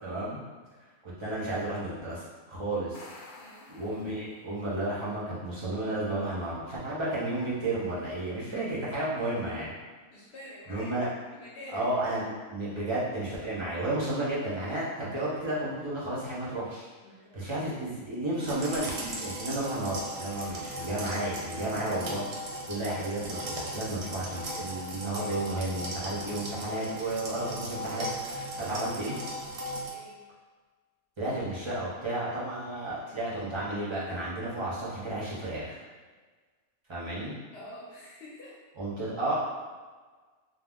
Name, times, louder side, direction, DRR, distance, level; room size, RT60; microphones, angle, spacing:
voice 1, 0.0-0.4 1.0-3.0 3.7-9.7 10.7-11.1 11.7-16.9 17.3-22.2 22.7-29.2 31.2-35.8 36.9-37.3 38.8-39.4, right 1 dB, 35° right, -8 dB, 0.4 m, -32 dB
sound 1, 2.7-4.7, left 3 dB, 90° left, 1.0 m, -51 dB
voice 2, 3.4-3.7 10.1-11.9 17.0-17.4 20.5-20.6 29.9-30.2 37.5-38.6, left 1 dB, 60° left, -6 dB, 0.8 m, -47 dB
sound 2, 18.4-29.9, equal, 65° right, 0.8 m, -37 dB
2.3 x 2.1 x 3.5 m, 1.4 s
omnidirectional pair, 1.4 m